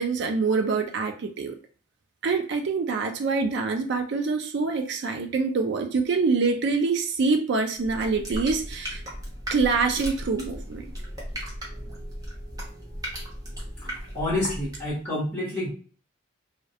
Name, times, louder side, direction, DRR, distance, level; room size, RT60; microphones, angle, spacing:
voice 1, 0.0-1.6 2.2-9.0 9.5-10.8, right 4 dB, 55° right, 5 dB, 0.4 m, -25 dB
sound 1, 7.7-15.0, equal, 20° right, 0.6 m, -36 dB
voice 2, 14.1-15.7, left 1 dB, 10° left, -7 dB, 1.0 m, -28 dB
2.2 x 2.1 x 2.7 m, 0.40 s
head